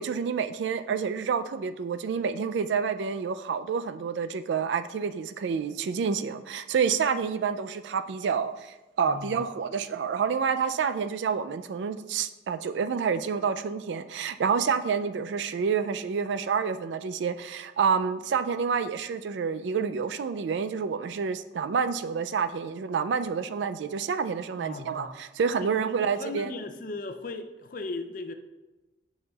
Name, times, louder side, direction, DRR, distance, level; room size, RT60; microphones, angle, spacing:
voice 1, 0.0-26.5, right 6 dB, 80° right, 11 dB, 0.3 m, -28 dB
voice 2, 9.0-9.4 24.6-25.1 25.6-25.7 26.0-28.3, left 3 dB, 50° left, 9 dB, 0.5 m, -37 dB
9.4 x 5.6 x 2.3 m, 1.1 s
head